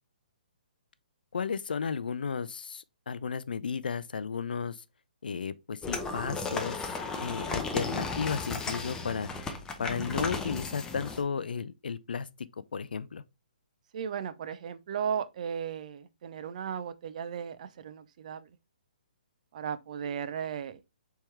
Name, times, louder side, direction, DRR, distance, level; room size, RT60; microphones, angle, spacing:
voice 1, 1.3-4.8 5.2-9.3 9.8-12.3 12.7-13.2, left 6 dB, 75° left, 0.4 m, -34 dB
sound 1, 5.8-11.2, left 4 dB, 10° left, 0.6 m, -35 dB
voice 2, 13.9-18.5 19.5-20.8, right 8 dB, 50° right, 0.5 m, -36 dB
4.4 x 3.5 x 3.2 m
hypercardioid pair, 135°, 5 cm